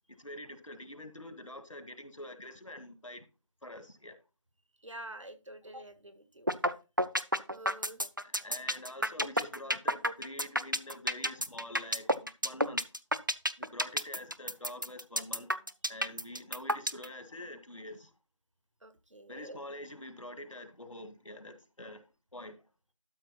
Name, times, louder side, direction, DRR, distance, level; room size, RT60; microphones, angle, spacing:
voice 1, 0.1-3.2 3.6-4.2 8.2-12.9 13.6-15.5 15.9-18.1 19.3-22.6, left 1 dB, 85° left, 1.9 m, -46 dB
voice 2, 4.8-6.5 7.5-8.0 16.5-16.6 18.8-19.6, right 1 dB, 70° right, 1.6 m, -47 dB
sound 1, 6.5-6.7 7.0-17.0, equal, 40° right, 0.5 m, -29 dB
12.5 x 4.8 x 4.2 m
figure-of-eight pair, 180°, 16 cm